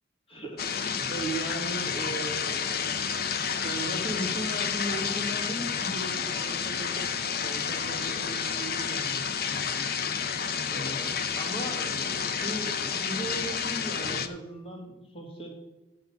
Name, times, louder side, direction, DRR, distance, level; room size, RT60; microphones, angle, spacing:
voice 1, 0.3-9.9 10.7-15.5, right 1 dB, 30° left, 1 dB, 2.1 m, -38 dB
sound 1, 0.6-14.3, left 7 dB, 55° left, 0.6 m, -30 dB
8.0 x 6.4 x 7.0 m, 1.0 s
head